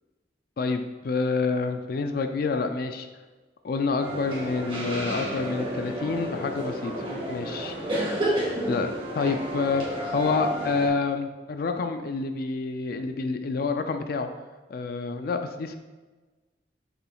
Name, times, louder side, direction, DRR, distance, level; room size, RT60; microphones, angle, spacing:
voice 1, 0.6-3.1 3.6-6.9 7.3-7.8 8.7-9.9 10.1-14.3 14.7-15.8, left 4 dB, 55° left, 7 dB, 0.4 m, -28 dB
sound 1, 4.0-10.9, right 1 dB, 30° right, 1.7 m, -31 dB
7.1 x 6.9 x 2.3 m, 1.3 s
head